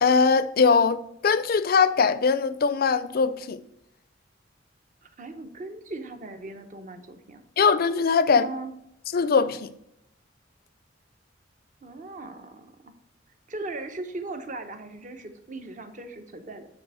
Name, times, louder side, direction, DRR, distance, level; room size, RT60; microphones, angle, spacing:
voice 1, 0.0-3.6 7.6-8.5 9.1-9.7, left 5 dB, 50° left, 0.4 m, -21 dB
voice 2, 5.0-7.4 8.3-8.7 11.8-12.9 13.5-16.7, right 2 dB, 40° right, 0.8 m, -38 dB
8.9 x 3.5 x 6.1 m
head